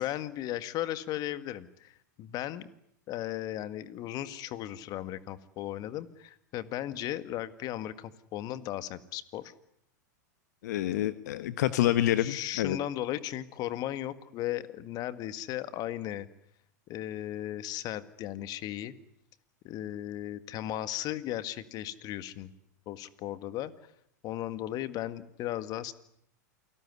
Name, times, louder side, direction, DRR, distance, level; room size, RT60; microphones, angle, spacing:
voice 1, 0.0-2.7 3.1-9.5 12.2-16.3 16.9-18.9 19.6-22.5 22.9-23.7 24.2-25.9, left 13 dB, 40° left, 13 dB, 1.9 m, -36 dB
voice 2, 10.6-12.8, left 13 dB, 65° left, 13 dB, 1.3 m, -27 dB
28.5 x 18.5 x 9.8 m, 0.74 s
hypercardioid pair, 105°, 10 cm